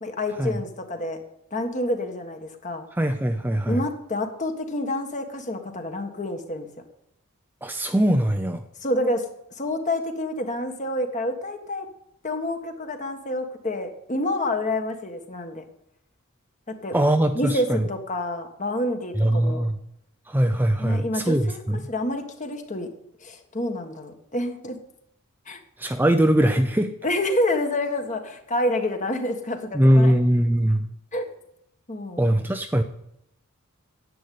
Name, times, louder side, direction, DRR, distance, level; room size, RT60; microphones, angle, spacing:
voice 1, 0.0-1.2 1.5-2.9 3.7-6.7 8.8-9.3 9.6-11.9 12.2-15.6 16.7-17.0 17.3-19.6 20.8-21.6 21.9-22.9 23.2-24.8 25.5-25.6 27.0-30.1 31.1-31.3 31.9-32.4, left 1 dB, 35° left, 6 dB, 1.6 m, -28 dB
voice 2, 3.0-3.8 7.6-8.6 16.9-17.8 19.2-19.8 20.3-21.8 25.8-26.9 29.7-30.8 32.2-32.8, right 1 dB, 10° right, 6 dB, 0.6 m, -21 dB
10.5 x 8.1 x 9.4 m, 0.78 s
head